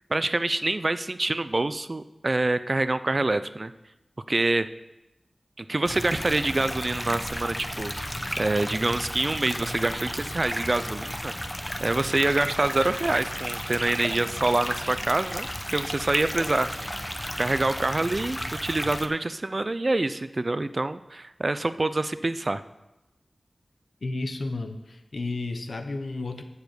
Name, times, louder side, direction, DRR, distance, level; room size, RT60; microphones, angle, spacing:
voice 1, 0.1-3.7 4.3-4.7 5.6-7.9 8.4-11.3 11.8-16.9 17.4-22.6, right 2 dB, 45° right, 13 dB, 0.5 m, -26 dB
sound 1, 5.8-19.1, equal, 10° left, 0.8 m, -33 dB
voice 2, 24.0-26.4, left 2 dB, 75° left, 7 dB, 0.9 m, -32 dB
7.1 x 6.7 x 8.0 m, 0.96 s
cardioid pair, 45°, 0 cm